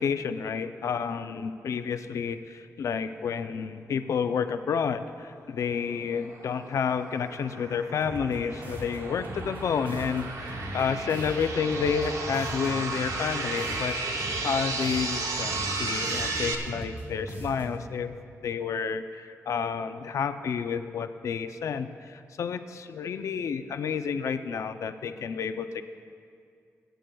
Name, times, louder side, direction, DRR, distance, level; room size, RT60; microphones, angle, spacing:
voice 1, 0.0-18.1 18.4-25.8, left 6 dB, 70° left, 9 dB, 0.5 m, -30 dB
sound 1, 5.7-16.6, right 3 dB, 80° right, 0.9 m, -34 dB
sound 2, 8.0-17.9, right 1 dB, 35° right, 1.7 m, -40 dB
23.5 x 9.0 x 2.3 m, 2.3 s
wide cardioid pair, 135°, 6 cm